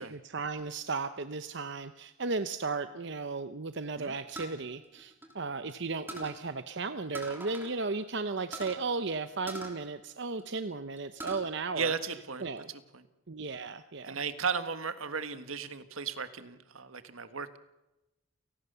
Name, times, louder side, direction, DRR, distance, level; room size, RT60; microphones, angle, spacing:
voice 1, 0.0-11.9 12.4-12.7 13.3-14.2, right 4 dB, 55° right, 10 dB, 0.8 m, -35 dB
sound 1, 4.4-5.7 6.1-6.4 7.1-7.8 8.0-8.1 8.5-8.8 9.5-10.6 11.0-11.5 11.9-12.6, right 1 dB, 10° right, 3.1 m, -43 dB
voice 2, 11.7-13.1 14.0-17.6, right 5 dB, 80° right, 10 dB, 1.6 m, -35 dB
29.5 x 18.5 x 6.9 m, 0.97 s
head